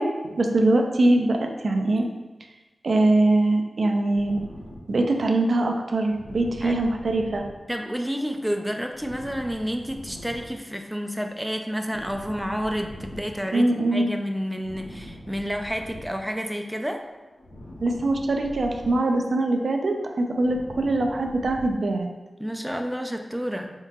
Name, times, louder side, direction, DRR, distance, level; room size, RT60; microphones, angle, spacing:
voice 1, 0.0-2.1 2.8-4.4 4.9-7.4 13.5-14.1 17.8-22.1, right 2 dB, 65° right, 3 dB, 0.4 m, -22 dB
sound 1, 4.1-16.7 17.0-21.7, left 1 dB, 75° left, 0.8 m, -44 dB
voice 2, 7.7-17.0 22.4-23.7, equal, 5° right, 4 dB, 0.3 m, -30 dB
3.6 x 3.6 x 2.9 m, 1.1 s
wide cardioid pair, 65°, 0 cm